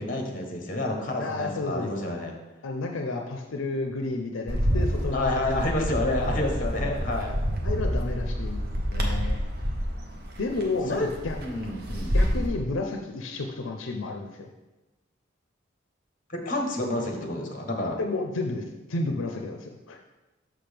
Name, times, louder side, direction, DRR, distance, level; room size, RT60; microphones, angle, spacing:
voice 1, 0.0-2.3 5.1-7.4 10.9-11.1 11.4-12.2 16.3-18.0, left 1 dB, 40° left, 2 dB, 1.0 m, -29 dB
voice 2, 1.2-1.9 2.6-5.7 7.6-9.4 10.4-11.4 12.1-14.5 18.0-18.6 18.9-20.0, left 2 dB, 80° left, 3 dB, 0.6 m, -31 dB
Bird, 4.5-12.5, equal, 50° right, 0.9 m, -28 dB
6.3 x 6.0 x 3.4 m, 1.1 s
head